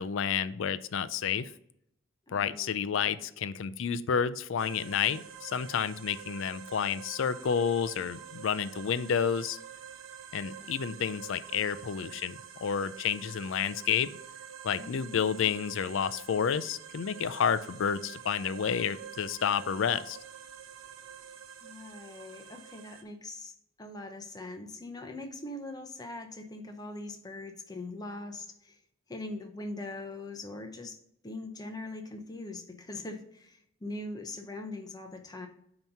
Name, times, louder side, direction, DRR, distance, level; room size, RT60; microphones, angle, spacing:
voice 1, 0.0-1.5 2.3-9.6 10.3-14.2 14.6-20.2, left 7 dB, 70° left, 14 dB, 0.4 m, -30 dB
voice 2, 2.3-3.0 10.6-11.1 14.8-15.5 21.6-23.5 23.8-28.8 29.1-31.0 31.2-35.5, left 2 dB, 20° left, 4 dB, 0.8 m, -42 dB
sound 1, 4.6-23.0, right 8 dB, 75° right, 0.9 m, -47 dB
9.0 x 3.0 x 5.4 m, 0.74 s
head